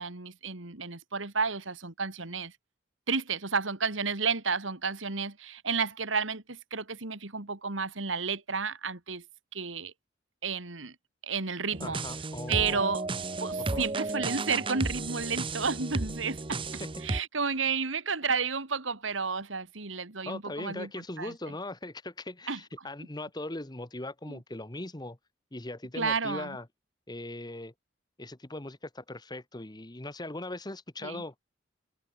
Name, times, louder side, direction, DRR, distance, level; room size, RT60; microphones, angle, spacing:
voice 1, 0.0-2.5 3.1-9.2 9.5-9.9 10.4-10.9 11.2-12.0 12.5-13.0 13.4-20.9 21.2-21.5 22.5-22.6 24.3-24.4 25.9-26.6 31.0-31.2, right 5 dB, 85° right, 2.5 m, -32 dB
sound 1, 11.7-17.2, right 3 dB, 25° right, 0.9 m, -33 dB
voice 2, 11.8-12.8 13.6-13.8 20.2-25.2 25.5-26.7 27.1-27.7 28.2-31.3, left 2 dB, 20° left, 1.4 m, -39 dB
head